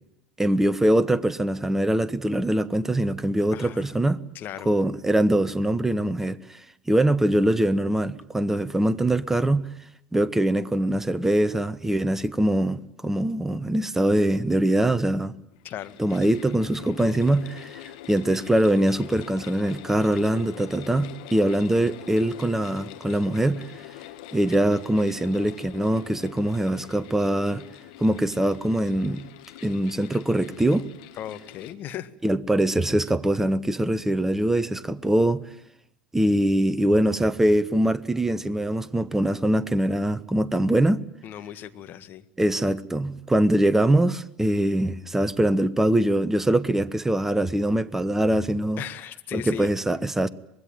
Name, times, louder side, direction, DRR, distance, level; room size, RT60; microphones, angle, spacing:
voice 1, 0.4-4.2 4.6-6.6 6.9-9.7 10.1-15.3 16.0-23.7 24.3-27.6 28.0-29.2 29.6-30.8 32.2-35.4 36.1-41.0 42.4-48.8 49.3-50.3, right 1 dB, 10° right, 1.1 m, -23 dB
voice 2, 3.5-4.0 4.3-4.7 15.6-16.2 31.2-32.1 41.2-42.2 48.8-49.7, left 11 dB, 45° left, 1.7 m, -37 dB
sound 1, 15.5-31.7, left 14 dB, 65° left, 1.6 m, -44 dB
25.0 x 21.0 x 9.1 m
figure-of-eight pair, 75°, 5 cm